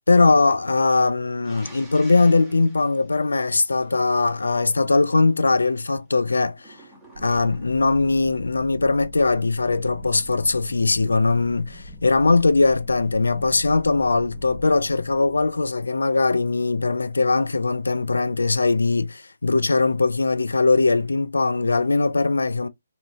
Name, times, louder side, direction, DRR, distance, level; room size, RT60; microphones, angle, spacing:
voice 1, 0.1-6.8 7.2-22.7, left 3 dB, 80° left, 0.3 m, -20 dB
sound 1, 1.4-4.2 6.6-8.0, right 2 dB, ahead, 1.1 m, -48 dB
sound 2, 7.1-16.4, left 1 dB, 30° right, 0.5 m, -42 dB
2.7 x 2.6 x 2.3 m
figure-of-eight pair, 140°, 0 cm